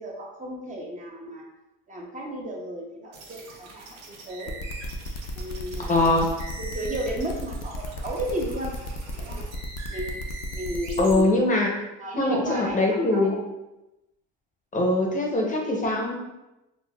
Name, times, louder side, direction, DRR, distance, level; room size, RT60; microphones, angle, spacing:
voice 1, 0.0-1.5 1.9-4.6 5.3-6.1 6.6-8.7 9.1-9.4 9.9-11.4 12.0-13.4, right 1 dB, 25° right, -1 dB, 0.6 m, -33 dB
sound 1, 3.1-11.2, right 2 dB, 65° right, 0.7 m, -43 dB
sound 2, 4.5-11.2, left 3 dB, 65° left, 0.5 m, -36 dB
voice 2, 5.9-6.2 11.0-11.7 12.2-13.3 14.7-16.1, left 2 dB, 25° left, -1 dB, 0.7 m, -22 dB
3.8 x 2.2 x 2.2 m, 0.96 s
supercardioid pair, 95°, 29 cm